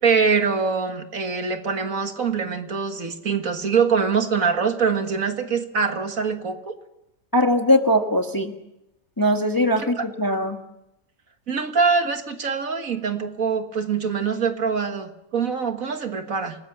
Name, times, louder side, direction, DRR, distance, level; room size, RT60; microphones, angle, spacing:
voice 1, 0.0-6.7 10.0-10.1 11.5-16.6, right 5 dB, 55° right, 7 dB, 1.9 m, -24 dB
voice 2, 7.3-8.5 9.2-10.6, equal, 15° left, 5 dB, 1.3 m, -20 dB
28.0 x 19.5 x 7.3 m, 0.89 s
omnidirectional pair, 1.7 m